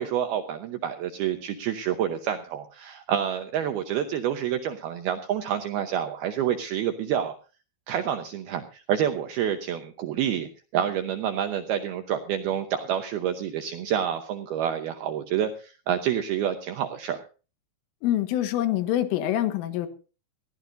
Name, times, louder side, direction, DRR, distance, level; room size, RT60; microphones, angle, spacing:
voice 1, 0.0-7.3 7.9-17.2, right 9 dB, 80° right, 6 dB, 2.3 m, -28 dB
voice 2, 18.0-19.9, left 12 dB, 90° left, 9 dB, 4.0 m, -25 dB
21.0 x 16.0 x 2.6 m, 0.34 s
omnidirectional pair, 5.7 m